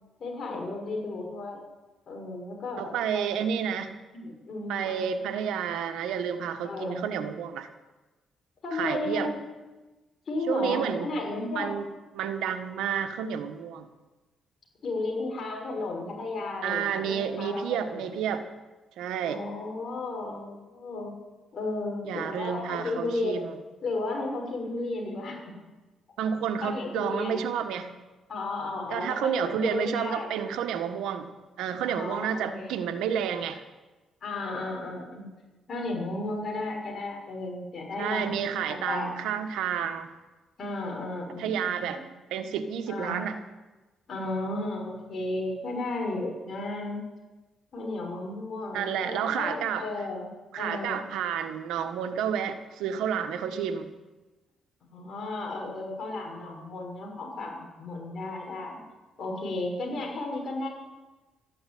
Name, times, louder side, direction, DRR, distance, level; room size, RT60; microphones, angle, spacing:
voice 1, 0.2-1.6 2.1-3.3 3.9-5.1 6.6-7.1 8.6-9.3 10.3-11.7 14.8-18.0 19.2-21.1 21.5-23.4 23.8-25.4 26.6-27.4 28.3-30.3 31.9-32.8 34.2-35.3 35.7-38.4 38.7-39.1 40.6-42.0 42.9-43.2 44.1-47.0 47.7-50.3 50.6-51.1 54.8-58.8 59.2-60.7, left 2 dB, 50° left, 0 dB, 6.2 m, -34 dB
voice 2, 2.8-3.9 4.7-7.7 8.7-9.3 10.5-11.1 11.5-11.9 12.1-13.9 16.6-18.4 19.0-19.4 22.0-23.5 26.2-27.9 28.9-31.3 31.6-33.6 38.0-40.1 41.4-42.0 42.3-43.4 48.7-49.8 50.5-53.9, right 8 dB, 90° right, 8 dB, 1.3 m, -30 dB
13.5 x 11.0 x 9.3 m, 1.2 s
cardioid pair, 90°, 0 cm